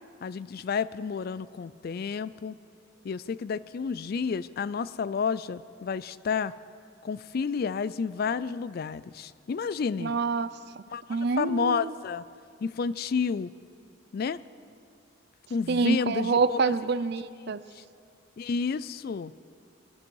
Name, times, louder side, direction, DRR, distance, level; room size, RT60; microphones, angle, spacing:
voice 1, 0.2-2.6 3.0-6.5 7.0-10.1 10.9-12.3 12.6-13.5 14.1-14.4 15.5-16.6 17.4-17.8 18.4-19.3, left 5 dB, 45° left, 18 dB, 0.3 m, -30 dB
voice 2, 10.0-10.5 11.1-11.9 15.7-17.6, right 4 dB, 50° right, 15 dB, 0.4 m, -26 dB
21.5 x 12.0 x 4.7 m, 2.4 s
head